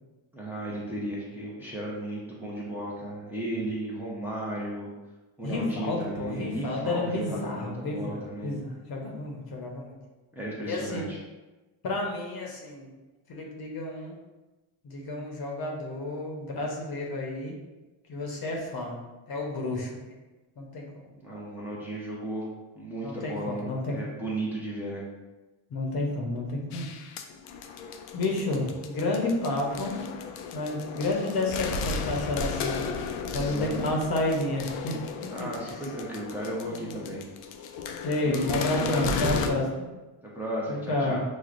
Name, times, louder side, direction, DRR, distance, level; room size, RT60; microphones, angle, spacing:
voice 1, 0.3-4.9 5.4-8.5 10.4-11.2 21.1-22.5 22.8-25.0 33.2-33.8 35.3-37.3 38.3-39.5 40.2-41.2, right 1 dB, 5° right, -6 dB, 0.7 m, -35 dB
voice 2, 5.4-8.2 8.4-10.0 10.7-11.0 11.8-12.9 13.3-14.2 14.8-17.6 18.1-19.0 19.3-20.1 20.6-20.9 23.0-24.0 25.7-26.9 28.1-29.9 30.5-32.9 33.3-35.0 35.6-35.7 36.7-37.0 38.0-39.9 40.7-41.2, left 2 dB, 45° left, 0 dB, 0.9 m, -30 dB
sound 1, 26.7-39.5, left 5 dB, 85° left, 0.6 m, -35 dB
6.1 x 2.3 x 2.5 m, 1.1 s
cardioid pair, 135°, 50 cm